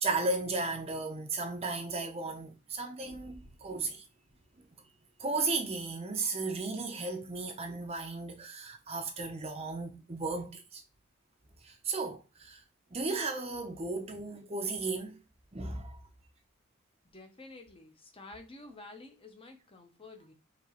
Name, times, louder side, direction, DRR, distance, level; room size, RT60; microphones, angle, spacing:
voice 1, 0.0-4.1 5.2-10.8 11.6-12.6 12.9-15.2 15.5-16.0, right 3 dB, 30° right, 0.6 m, -35 dB
voice 2, 17.0-20.3, left 2 dB, 25° left, 0.7 m, -50 dB
5.0 x 2.9 x 2.9 m
head